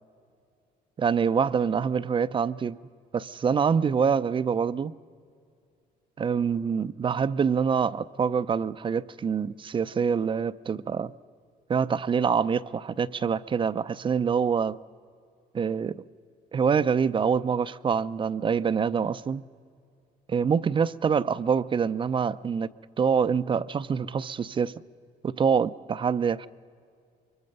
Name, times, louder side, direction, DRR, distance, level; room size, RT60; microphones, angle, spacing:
voice 1, 1.0-2.8 3.1-4.9 6.2-11.1 11.7-14.8 15.5-16.0 16.5-19.4 20.3-22.7 23.0-24.7 25.2-26.5, right 6 dB, 30° right, 0.5 m, -25 dB
24.0 x 23.0 x 5.4 m
cardioid pair, 110°, 17 cm